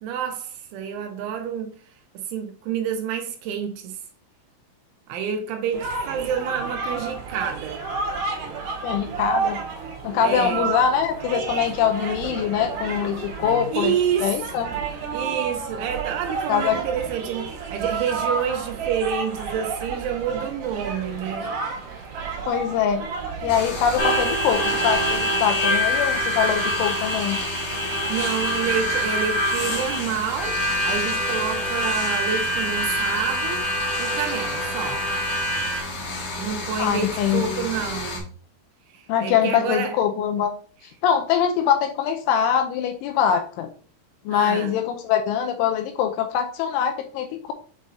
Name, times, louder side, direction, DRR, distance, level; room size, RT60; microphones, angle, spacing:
voice 1, 0.0-1.7 2.1-4.0 5.1-7.9 10.2-10.7 13.7-14.4 15.1-21.5 28.1-33.6 34.0-35.0 36.4-38.3 38.9-40.0 44.3-44.8, right 8 dB, 85° right, 3.0 m, -28 dB
sound 1, 5.7-25.2, right 5 dB, 65° right, 2.1 m, -31 dB
voice 2, 8.8-9.6 10.0-14.7 16.5-16.8 22.4-23.0 23.4-27.4 36.8-37.7 39.1-40.5 41.0-43.7 44.3-47.5, left 8 dB, 85° left, 2.9 m, -23 dB
sound 2, 23.5-38.2, left 2 dB, 65° left, 1.6 m, -32 dB
Harmonica, 24.0-35.8, equal, 35° left, 3.4 m, -25 dB
7.5 x 4.8 x 2.7 m
omnidirectional pair, 5.8 m